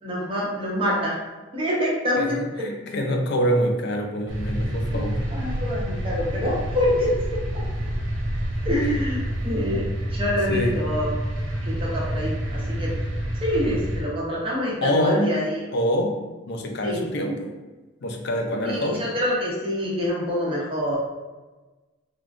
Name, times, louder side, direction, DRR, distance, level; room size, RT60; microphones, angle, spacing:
voice 1, 0.0-1.2 1.5-2.4 4.9-5.0 5.3-7.6 8.6-9.8 10.1-11.1 11.7-12.9 13.4-15.6 16.8-17.0 18.6-21.0, left 1 dB, 30° right, -5 dB, 0.8 m, -26 dB
voice 2, 2.6-5.2 8.8-8.9 10.5-10.8 14.8-15.3 15.7-16.2 16.5-17.5 18.0-19.1, equal, 60° left, 3 dB, 0.5 m, -25 dB
sound 1, 4.3-14.0, equal, 90° right, 0.7 m, -28 dB
3.5 x 2.4 x 2.4 m, 1.2 s
head